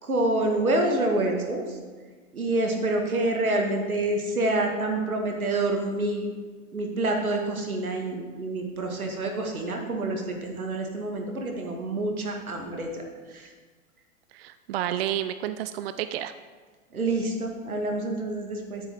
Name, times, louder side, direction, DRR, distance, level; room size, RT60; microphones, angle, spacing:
voice 1, 0.0-1.6 2.3-6.3 6.7-13.0 13.3-13.5 16.9-18.8, right 2 dB, 85° right, 2 dB, 1.9 m, -27 dB
voice 2, 14.3-16.3, right 11 dB, 45° right, 11 dB, 0.4 m, -30 dB
10.5 x 8.9 x 3.7 m, 1.4 s
hypercardioid pair, 110°, 42 cm